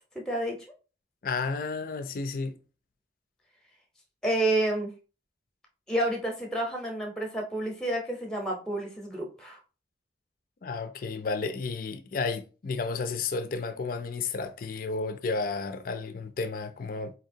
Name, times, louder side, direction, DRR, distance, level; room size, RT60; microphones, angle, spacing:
voice 1, 0.3-0.6 4.2-4.9 5.9-9.6, right 1 dB, 5° left, 0.7 m, -29 dB
voice 2, 1.2-2.6 10.6-17.1, left 4 dB, 50° left, 0.4 m, -32 dB
4.1 x 2.8 x 2.6 m
head